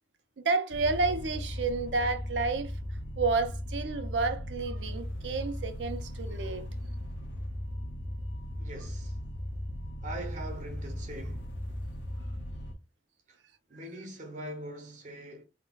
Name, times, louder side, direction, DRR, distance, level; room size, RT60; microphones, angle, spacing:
voice 1, 0.4-2.7 3.2-6.7, right 3 dB, 85° right, 0.6 m, -30 dB
sound 1, 0.7-12.7, equal, 90° left, 0.6 m, -37 dB
voice 2, 8.6-9.2 10.0-11.6 13.3-13.4 13.7-15.4, right 1 dB, 45° right, 0.7 m, -42 dB
3.6 x 2.2 x 2.3 m
head